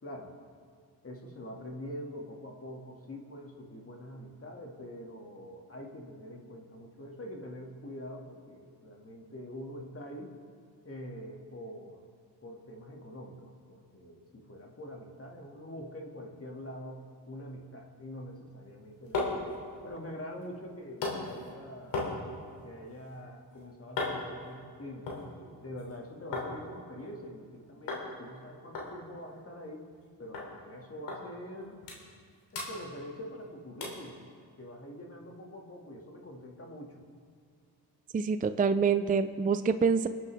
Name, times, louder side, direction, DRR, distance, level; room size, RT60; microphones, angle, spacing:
voice 1, 0.0-0.3 1.0-10.3 10.8-12.0 12.4-22.0 22.6-29.9 30.2-31.8 32.5-34.2 34.6-37.0, equal, 35° left, 0 dB, 2.3 m, -45 dB
sound 1, 18.6-26.5 26.8-27.5 27.9-28.1 28.3-28.4 28.7-30.1 30.3-30.5 31.1-31.2 31.6-32.2 32.5-33.4 33.8-34.1 34.6-34.7, left 3 dB, 85° left, 3.1 m, -38 dB
voice 2, 38.1-40.1, right 5 dB, 20° right, 11 dB, 0.5 m, -26 dB
23.0 x 8.4 x 3.5 m, 2.1 s
supercardioid pair, 60°, 41 cm